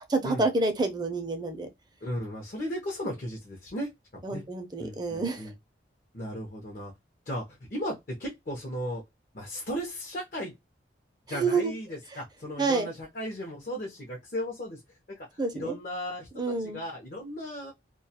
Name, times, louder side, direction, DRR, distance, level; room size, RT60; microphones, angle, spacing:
voice 1, 0.1-1.7 4.2-5.5 11.3-11.7 12.6-12.9 15.4-15.8 16.4-16.8, right 3 dB, 25° right, 0.5 m, -28 dB
voice 2, 2.0-4.4 4.8-5.5 6.1-6.9 7.3-9.0 9.3-10.5 11.3-14.8 15.1-17.7, equal, 50° left, 0.7 m, -36 dB
2.3 x 2.3 x 2.7 m
head